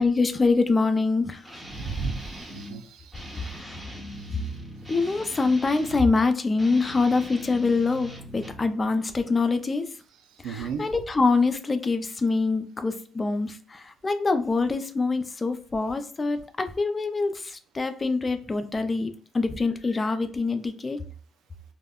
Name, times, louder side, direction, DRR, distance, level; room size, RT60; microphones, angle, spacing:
voice 1, 0.0-1.6 3.4-3.8 4.9-9.9 10.4-21.0, left 3 dB, 30° left, 9 dB, 0.4 m, -25 dB
Guitar, 1.4-2.8 3.1-6.1 6.5-8.7, equal, 10° right, 1.1 m, -41 dB
voice 2, 1.7-3.5 10.4-10.8, right 5 dB, 90° right, 6 dB, 0.4 m, -34 dB
3.5 x 2.1 x 2.3 m, 0.43 s
cardioid pair, 90°, 0 cm